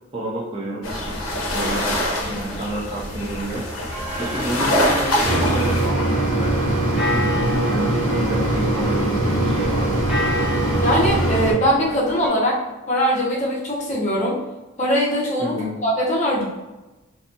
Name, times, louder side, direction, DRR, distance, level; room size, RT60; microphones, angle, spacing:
voice 1, 0.1-1.9 2.2-3.6 4.2-10.0 15.4-15.7, right 1 dB, 25° right, -4 dB, 0.3 m, -30 dB
sound 1, 0.8-5.9, left 1 dB, 80° left, 0.6 m, -24 dB
sound 2, 3.9-12.3, left 2 dB, 5° right, 0.8 m, -32 dB
Mechanisms, 5.2-11.5, right 1 dB, 75° right, 0.6 m, -21 dB
voice 2, 10.8-12.6 12.9-14.4 14.8-15.6 15.8-16.4, equal, 35° left, -5 dB, 0.6 m, -21 dB
2.6 x 2.2 x 2.6 m, 1.1 s
head